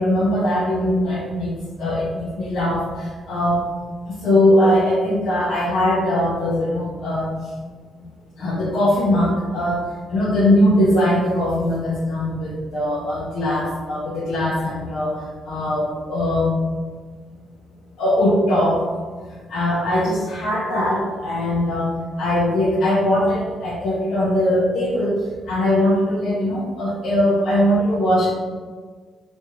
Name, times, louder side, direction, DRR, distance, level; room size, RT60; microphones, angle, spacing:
voice 1, 0.0-3.6 4.0-7.5 8.4-16.5 18.0-18.9 19.2-25.2 25.5-28.3, left 1 dB, 70° left, -7 dB, 0.7 m, -20 dB
3.4 x 2.6 x 3.1 m, 1.5 s
cardioid pair, 90°, 0 cm